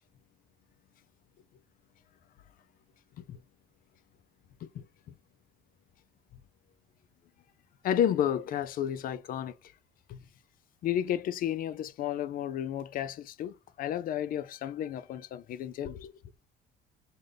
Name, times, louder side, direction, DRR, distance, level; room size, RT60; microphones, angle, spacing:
voice 1, 7.8-9.5 10.1-10.2 10.8-16.1, left 10 dB, 55° left, 0.4 m, -32 dB
5.2 x 2.2 x 3.3 m
cardioid pair, 110°, 17 cm